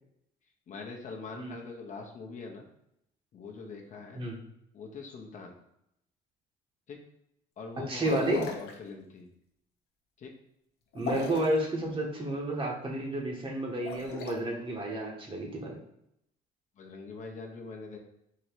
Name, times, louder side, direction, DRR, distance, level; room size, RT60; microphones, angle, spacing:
voice 1, 0.7-2.6 3.3-4.2 4.7-5.6 6.9-7.0 7.6-9.3 10.2-10.3 11.3-11.4 16.8-18.0, left 4 dB, 45° left, 1 dB, 0.9 m, -43 dB
voice 2, 7.9-8.4 10.9-15.8, right 1 dB, 30° right, 0 dB, 1.2 m, -31 dB
sound 1, 8.0-8.7 10.9-11.6 13.7-14.3, left 4 dB, 80° left, 0.8 m, -35 dB
3.8 x 3.0 x 4.5 m, 0.80 s
cardioid pair, 110°, 17 cm